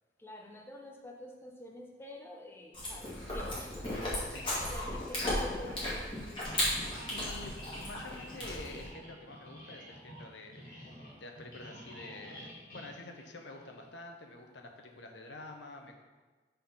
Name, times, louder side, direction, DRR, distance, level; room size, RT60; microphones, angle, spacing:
voice 1, 0.2-4.0 4.7-6.7, left 1 dB, 15° left, 0 dB, 0.5 m, -48 dB
Chewing mastication, 2.7-8.9, left 1 dB, 30° left, 2.0 m, -35 dB
voice 2, 4.1-4.9 7.1-15.9, left 2 dB, 85° left, 3 dB, 0.8 m, -48 dB
sound 1, 6.4-13.9, equal, 55° left, 1.3 m, -50 dB
6.7 x 3.9 x 5.4 m, 1.3 s
head